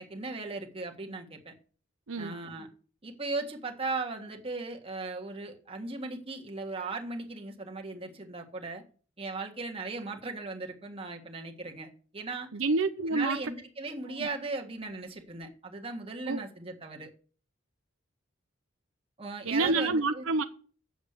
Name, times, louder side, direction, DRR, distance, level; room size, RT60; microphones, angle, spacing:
voice 1, 0.0-1.5 2.2-2.7 3.0-8.8 9.2-12.5 13.0-17.1 19.2-20.3, right 3 dB, 30° right, 1.6 m, -37 dB
voice 2, 12.5-13.4 14.2-14.3 16.3-16.4 19.4-20.4, right 3 dB, 80° right, 0.8 m, -28 dB
8.4 x 7.2 x 6.6 m
head